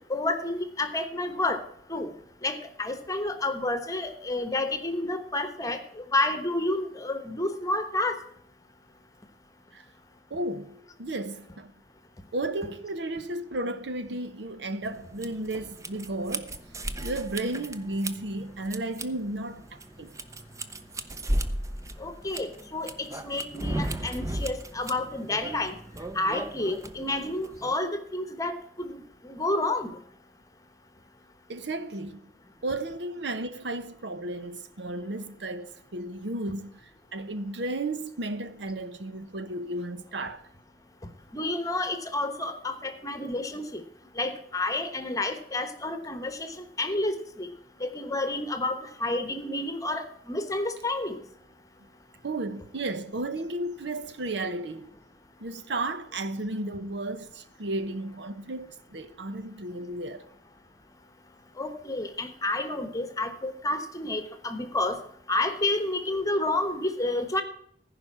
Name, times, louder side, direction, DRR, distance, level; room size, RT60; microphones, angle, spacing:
voice 1, 0.1-1.6 1.9-2.1 2.4-8.2 22.0-25.8 26.1-29.9 41.3-43.8 44.2-47.5 47.8-51.2 61.6-65.0 65.3-67.4, left 2 dB, 20° left, 1.1 m, -30 dB
voice 2, 10.3-11.7 12.3-16.5 17.0-20.1 31.5-32.3 32.6-40.4 52.2-54.9 55.4-60.2, right 2 dB, 75° right, 0.9 m, -33 dB
sound 1, 14.8-27.7, right 1 dB, 15° right, 0.6 m, -36 dB
15.5 x 5.2 x 7.3 m
head